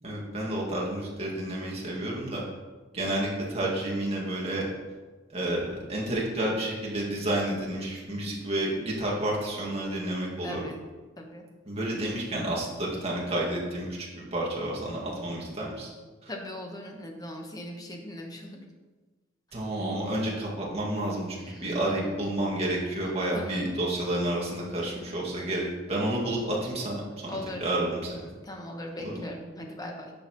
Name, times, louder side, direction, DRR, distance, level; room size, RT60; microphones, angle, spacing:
voice 1, 0.0-2.4 2.9-4.7 5.3-10.6 11.7-15.9 16.2-16.3 19.5-28.2 29.0-29.2, right 1 dB, 30° right, -4 dB, 1.9 m, -30 dB
voice 2, 10.4-10.8 11.2-11.4 16.3-18.6 21.4-22.1 23.0-23.7 27.3-27.6 28.4-30.1, left 1 dB, 20° left, 2 dB, 1.0 m, -39 dB
10.0 x 6.6 x 3.0 m, 1.3 s
head